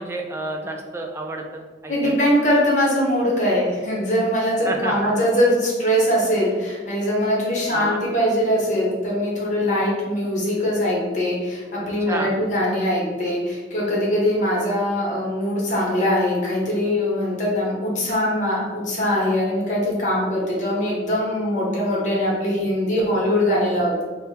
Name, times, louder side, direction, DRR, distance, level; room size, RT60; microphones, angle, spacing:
voice 1, 0.0-2.2 4.6-5.1 7.7-8.0 12.0-12.3, right 2 dB, 15° right, 1 dB, 0.3 m, -30 dB
voice 2, 1.9-24.0, equal, 40° left, -4 dB, 1.0 m, -22 dB
3.4 x 2.1 x 4.2 m, 1.4 s
head